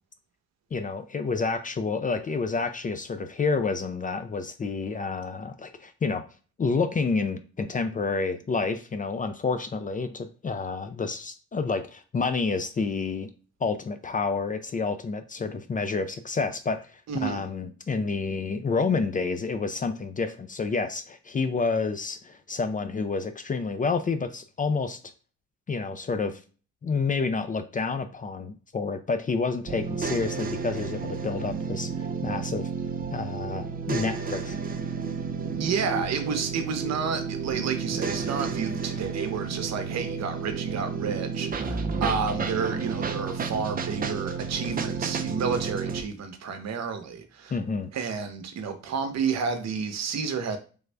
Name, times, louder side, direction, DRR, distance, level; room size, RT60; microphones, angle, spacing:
voice 1, 0.7-6.2 6.6-13.3 13.6-25.0 25.7-26.4 26.8-32.7 33.1-34.6 47.5-47.9, left 4 dB, 25° left, 0.4 m, -29 dB
voice 2, 17.1-17.4 35.5-47.6 47.9-50.6, right 6 dB, 60° right, 0.8 m, -30 dB
sound 1, 29.7-46.0, right 5 dB, 30° right, 0.5 m, -31 dB
3.4 x 2.5 x 3.3 m
cardioid pair, 90°, 30 cm